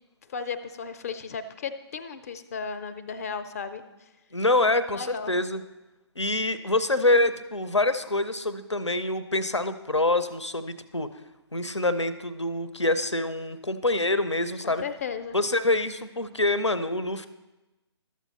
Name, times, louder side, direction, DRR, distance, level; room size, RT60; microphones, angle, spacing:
voice 1, 0.3-3.8 4.9-5.3 14.6-15.4, left 6 dB, 35° left, 11 dB, 0.6 m, -35 dB
voice 2, 4.3-5.6 6.2-11.1 11.5-14.8 15.3-17.3, left 2 dB, 85° left, 13 dB, 0.7 m, -26 dB
12.5 x 7.4 x 4.1 m, 1.1 s
figure-of-eight pair, 135°, 14 cm